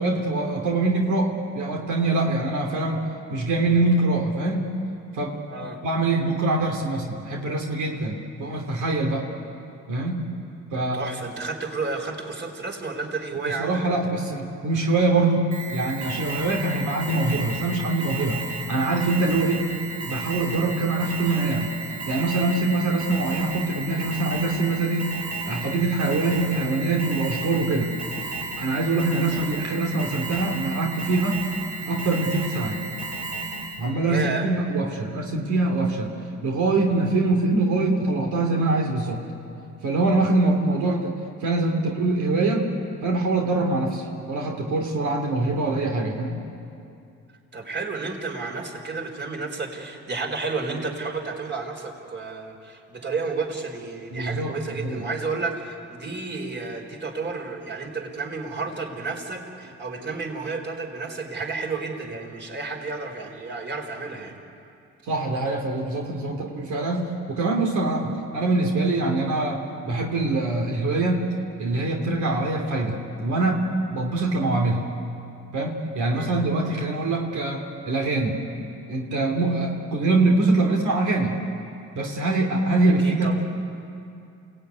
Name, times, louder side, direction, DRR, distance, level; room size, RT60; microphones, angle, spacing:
voice 1, 0.0-3.0 3.3-4.7 5.1-5.4 5.8-9.3 9.9-10.3 10.7-11.1 13.4-18.4 18.7-19.8 20.1-21.7 22.1-25.2 25.4-27.9 28.6-31.4 31.8-32.8 33.8-36.1 36.4-39.2 39.8-41.1 41.4-42.7 43.0-46.3 54.1-55.0 65.1-71.3 71.6-73.6 73.9-74.8 75.5-78.4 78.9-81.3 81.9-83.4, right 2 dB, 80° right, 0 dB, 3.1 m, -24 dB
voice 2, 10.7-13.8 29.3-29.5 34.0-34.5 47.5-64.4 76.1-76.3 83.0-83.4, right 4 dB, 35° right, 3 dB, 4.3 m, -31 dB
Alarm, 15.5-33.9, right 3 dB, 65° right, 4.3 m, -33 dB
28.5 x 17.5 x 9.6 m, 2.6 s
cardioid pair, 90°, 30 cm